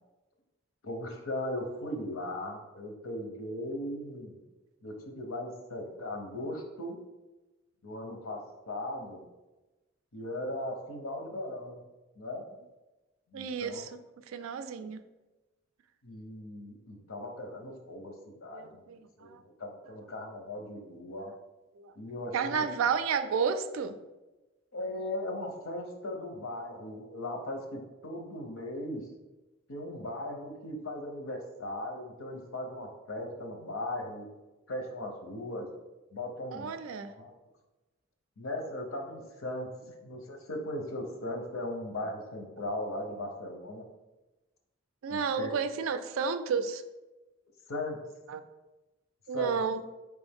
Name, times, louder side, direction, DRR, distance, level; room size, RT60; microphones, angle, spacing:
voice 1, 0.8-4.4 4.8-7.0 7.8-8.4 8.7-9.2 10.1-11.8 12.2-12.4 13.3-13.8 16.0-18.8 19.2-19.3 19.6-21.3 22.0-22.6 24.7-29.0 29.7-34.2 34.7-35.7 36.1-36.7 37.1-37.3 38.4-39.7 40.0-43.8 45.1-45.5 47.7-48.0 49.3-49.6, left 1 dB, 80° left, 4 dB, 0.8 m, -38 dB
voice 2, 13.3-14.0 14.3-15.0 18.5-19.4 21.8-21.9 22.3-23.9 36.5-37.1 45.0-46.8 48.3-48.4 49.3-49.8, right 6 dB, 80° right, 11 dB, 0.4 m, -31 dB
4.5 x 3.3 x 3.5 m, 1.1 s
head